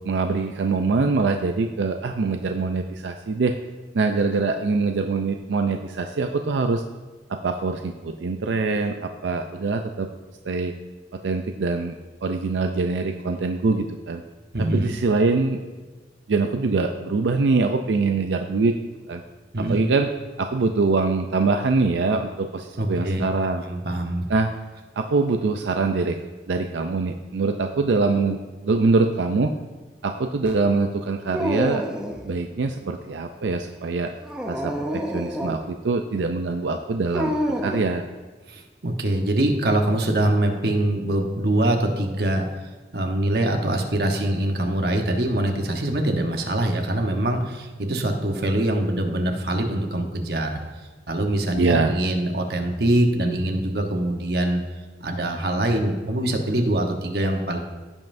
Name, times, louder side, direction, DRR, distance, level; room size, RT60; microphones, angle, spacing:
voice 1, 0.0-3.5 3.9-6.8 7.3-10.1 10.5-10.7 11.2-11.9 12.2-14.2 14.7-15.6 16.3-18.7 19.1-19.2 19.7-20.1 20.4-23.6 24.3-24.5 25.0-26.2 26.5-29.5 30.0-31.9 32.2-34.1 34.5-38.0 51.6-51.9, right 3 dB, 90° right, 5 dB, 0.5 m, -23 dB
voice 2, 22.8-23.2 23.6-24.2 38.5-50.6 51.1-54.6 55.0-57.6, right 1 dB, 60° right, 3 dB, 1.0 m, -23 dB
Dog, 31.3-32.3 34.2-35.6 37.1-37.9, equal, 5° right, 0.6 m, -27 dB
16.0 x 5.4 x 2.6 m, 1.3 s
head